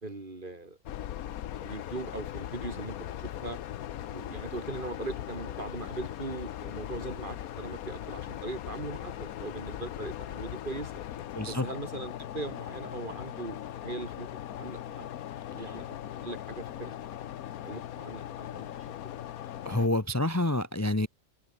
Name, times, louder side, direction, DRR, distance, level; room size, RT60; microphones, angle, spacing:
voice 1, 0.0-0.8 1.6-3.6 4.1-10.9 11.5-15.1 15.5-16.9 17.6-18.9, right 2 dB, 35° right, 2.8 m, -40 dB
sound 1, 0.9-19.9, left 11 dB, 85° left, 1.3 m, -39 dB
voice 2, 11.3-11.7 19.6-21.1, left 1 dB, 10° left, 1.2 m, -27 dB
omnidirectional pair, 1.5 m